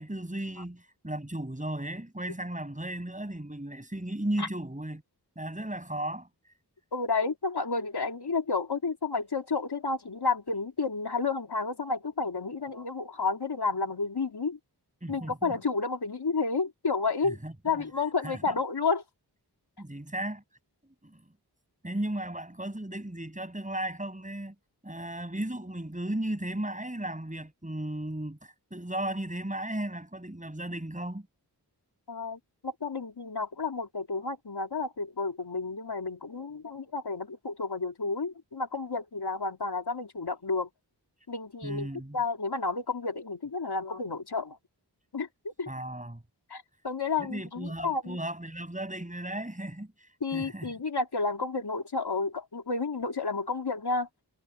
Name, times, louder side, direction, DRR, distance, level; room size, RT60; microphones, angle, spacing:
voice 1, 0.0-5.0 5.4-6.3 15.0-15.6 17.2-17.8 18.2-18.5 19.8-20.4 21.0-21.2 21.8-24.6 24.8-31.3 41.6-42.2 45.7-46.2 47.2-50.7, right 1 dB, 20° right, 7.1 m, -35 dB
voice 2, 6.9-14.6 15.1-17.4 17.6-19.0 32.1-40.7 41.3-44.6 45.1-45.7 46.5-48.2 50.2-54.1, left 4 dB, 70° left, 2.7 m, -31 dB
wide cardioid pair, 55°, 40 cm